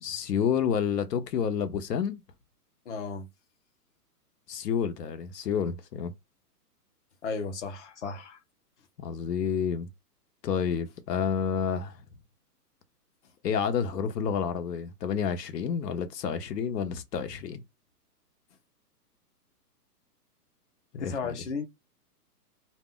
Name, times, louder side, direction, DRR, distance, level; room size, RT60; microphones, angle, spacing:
voice 1, 0.0-2.2 4.5-6.1 9.0-9.9 10.4-12.0 13.4-17.6 20.9-21.4, left 7 dB, 85° left, 0.7 m, -29 dB
voice 2, 2.9-3.3 7.2-8.4 21.0-21.6, left 5 dB, 45° left, 0.6 m, -34 dB
2.1 x 2.1 x 3.6 m
hypercardioid pair, 175°, 48 cm